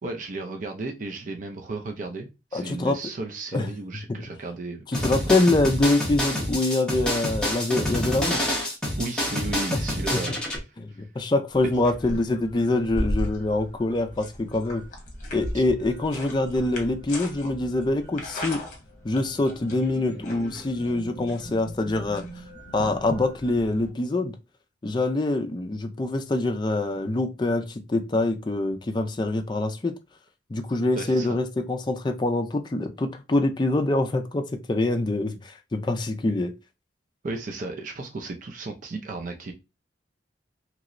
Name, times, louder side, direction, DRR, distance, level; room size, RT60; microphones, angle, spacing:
voice 1, 0.0-5.3 9.0-10.4 10.7-11.1 15.5-15.6 31.0-31.4 37.2-39.5, right 2 dB, 45° right, 0.4 m, -34 dB
voice 2, 2.5-3.0 3.5-3.7 4.9-8.5 9.7-9.8 10.1-10.2 10.8-14.8 15.3-18.6 19.0-22.2 22.7-24.4 24.8-29.9 30.5-36.5, left 2 dB, 25° left, 0.4 m, -25 dB
sound 1, 4.9-10.6, left 1 dB, 5° left, 0.9 m, -27 dB
sound 2, 11.5-23.9, left 1 dB, 40° left, 0.9 m, -37 dB
3.0 x 2.9 x 2.5 m
head